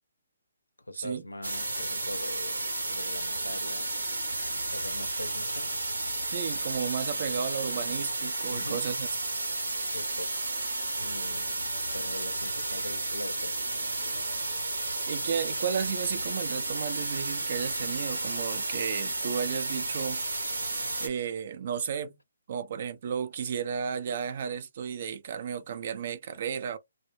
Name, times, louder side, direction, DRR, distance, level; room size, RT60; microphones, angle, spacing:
voice 1, 0.8-4.1 4.5-5.7 8.5-8.8 9.9-10.3 11.0-11.6 11.9-13.5, left 1 dB, 90° left, 0.6 m, -42 dB
sound 1, 1.4-21.1, right 2 dB, 80° right, 0.8 m, -32 dB
voice 2, 6.3-9.1 15.1-20.2 21.0-22.2 22.5-26.8, right 7 dB, 50° right, 0.6 m, -33 dB
2.1 x 2.0 x 3.1 m
figure-of-eight pair, 135°, 0 cm